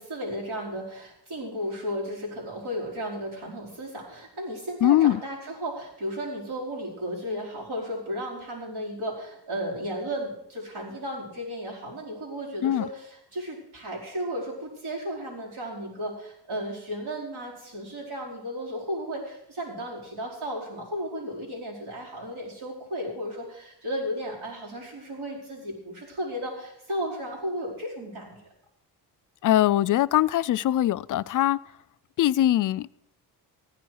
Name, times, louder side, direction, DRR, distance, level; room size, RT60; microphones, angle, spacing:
voice 1, 0.0-28.4, equal, 70° right, 4.8 m, -34 dB
voice 2, 4.8-5.2 12.6-12.9 29.4-31.6 32.2-32.9, left 13 dB, 50° left, 0.4 m, -22 dB
15.5 x 10.0 x 4.7 m
cardioid pair, 110°, 41 cm